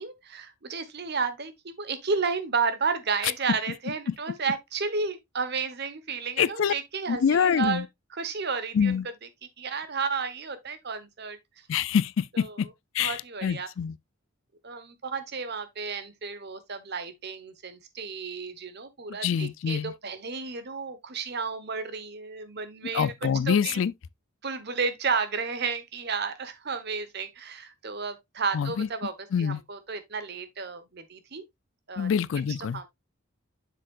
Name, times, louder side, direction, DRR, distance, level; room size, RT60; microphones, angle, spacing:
voice 1, 0.0-7.8 8.1-9.0 9.6-11.4 12.3-12.7 13.0-13.7 14.6-23.8 24.4-31.4 31.9-32.1 32.6-32.9, right 5 dB, 50° right, 1.1 m, -32 dB
voice 2, 6.4-6.7 7.1-7.8 8.7-9.1 11.7-12.7 12.9-14.0 19.2-19.9 22.9-23.9 28.5-28.9 29.3-29.6 32.0-32.8, left 7 dB, 65° left, 0.4 m, -25 dB
7.7 x 6.5 x 2.4 m
head